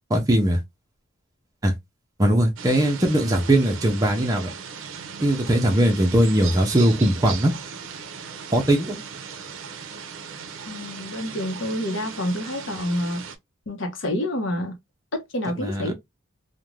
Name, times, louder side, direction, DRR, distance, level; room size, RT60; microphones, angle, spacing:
voice 1, 0.1-0.6 1.6-1.7 2.2-4.5 5.2-7.5 8.5-9.0 15.6-15.9, right 1 dB, 15° right, 0.5 m, -20 dB
sound 1, 2.6-13.4, right 6 dB, 70° right, 0.5 m, -37 dB
voice 2, 10.7-13.2 13.7-14.8 15.1-15.9, left 1 dB, 65° left, 0.7 m, -28 dB
2.5 x 2.1 x 3.1 m
head